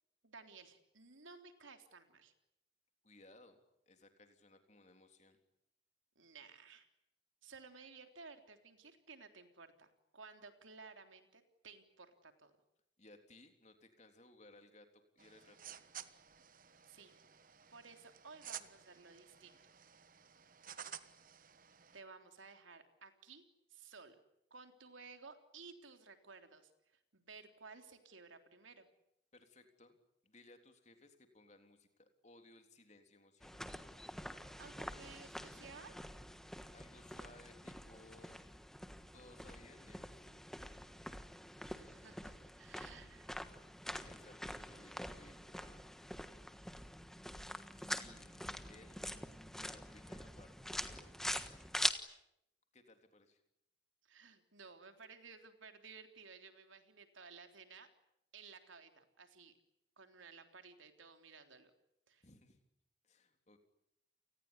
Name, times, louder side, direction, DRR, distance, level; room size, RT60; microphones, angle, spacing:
voice 1, 0.2-2.3 6.2-6.9 7.4-12.5 16.9-17.2 17.7-19.6 21.9-23.4 23.7-24.2 24.5-26.7 27.1-28.9 34.6-36.0 41.7-43.3 54.0-57.9 58.3-59.5 60.0-61.7 62.1-62.2, right 4 dB, 85° right, 6 dB, 3.6 m, -56 dB
voice 2, 3.0-3.6 3.9-5.4 13.0-15.9 29.3-30.0 30.2-33.7 36.7-38.5 39.1-40.4 43.9-45.9 47.8-49.0 49.5-50.5 50.8-51.1 52.7-53.4 62.2-62.6 63.0-63.6, left 2 dB, 35° left, 6 dB, 3.5 m, -62 dB
sound 1, 15.2-22.0, right 9 dB, 45° right, 1.3 m, -53 dB
sound 2, 33.4-51.9, left 1 dB, ahead, 1.4 m, -45 dB
30.0 x 19.5 x 9.9 m, 0.82 s
head